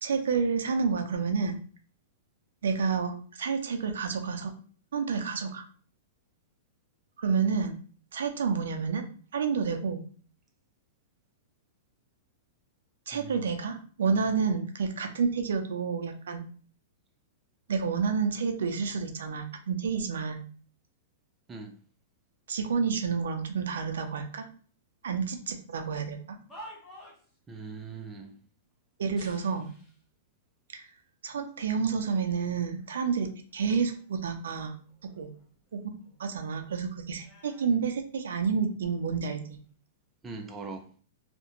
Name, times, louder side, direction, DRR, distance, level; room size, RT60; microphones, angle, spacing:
voice 1, 0.0-1.6 2.6-4.5 4.9-5.6 7.2-7.8 8.1-9.1 9.3-10.0 13.1-16.4 17.7-20.4 22.5-24.5 25.0-26.4 29.0-29.7 30.7-30.9 31.2-34.8 35.2-35.3 35.7-35.8 36.2-39.6, right 5 dB, 85° right, 5 dB, 0.4 m, -29 dB
voice 2, 13.1-13.4 21.5-21.7 27.5-28.3 40.2-40.9, right 4 dB, 15° right, 3 dB, 0.3 m, -41 dB
sound 1, 26.1-27.4 29.1-30.0 30.8-30.9 31.6-32.3 32.8-34.2 34.6-36.3 36.5-38.7 39.4-39.7, equal, 10° left, 0.8 m, -53 dB
2.4 x 2.1 x 2.8 m, 0.42 s
hypercardioid pair, 150°, 0 cm